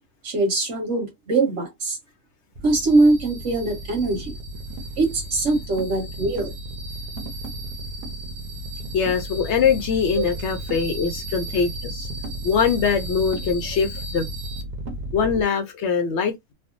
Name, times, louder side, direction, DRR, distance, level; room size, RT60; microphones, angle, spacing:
voice 1, 0.2-2.0 2.6-4.3 5.0-6.5, right 2 dB, 50° right, 1.6 m, -22 dB
sound 1, 2.6-15.4, right 1 dB, 85° right, 1.2 m, -34 dB
voice 2, 8.9-12.1 12.4-14.2 15.1-16.5, left 6 dB, 65° left, 0.7 m, -22 dB
3.3 x 2.1 x 2.5 m
omnidirectional pair, 1.6 m